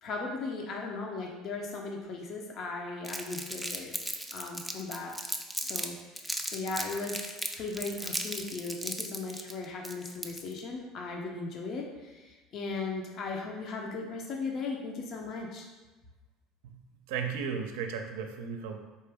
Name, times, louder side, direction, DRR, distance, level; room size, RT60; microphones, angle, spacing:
voice 1, 0.0-3.9 4.3-5.1 5.6-7.3 7.5-15.7, left 3 dB, 50° left, 1 dB, 0.6 m, -37 dB
Crumpling crinkling, 3.0-5.9 6.2-10.6, equal, 5° left, 0.4 m, -36 dB
voice 2, 17.1-18.8, right 6 dB, 80° right, 5 dB, 0.5 m, -35 dB
4.3 x 2.8 x 3.4 m, 1.2 s
supercardioid pair, 105°, 0 cm